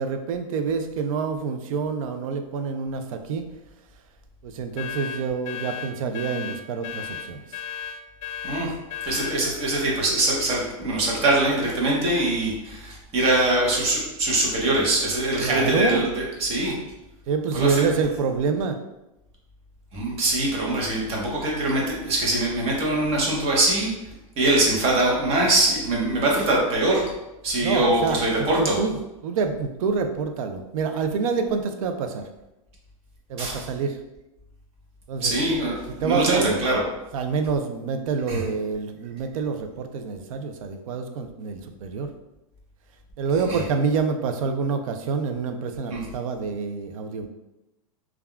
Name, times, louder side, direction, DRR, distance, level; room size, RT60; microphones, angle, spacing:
voice 1, 0.0-3.5 4.4-7.6 15.4-16.0 17.3-18.8 27.6-29.0 29.2-32.2 33.3-34.0 35.1-35.3 35.9-36.6 37.1-42.1 43.2-47.3, right 5 dB, 70° right, 7 dB, 0.4 m, -27 dB
sound 1, 4.8-9.4, left 8 dB, 65° left, 0.5 m, -34 dB
voice 2, 9.0-16.7 17.5-17.8 19.9-23.9 24.4-27.0 27.4-28.8 33.4-33.6 35.2-36.8 38.3-38.5 43.5-43.6 45.9-46.0, right 2 dB, 35° right, -2 dB, 0.9 m, -23 dB
3.4 x 2.3 x 2.2 m, 0.95 s
supercardioid pair, 135°, 19 cm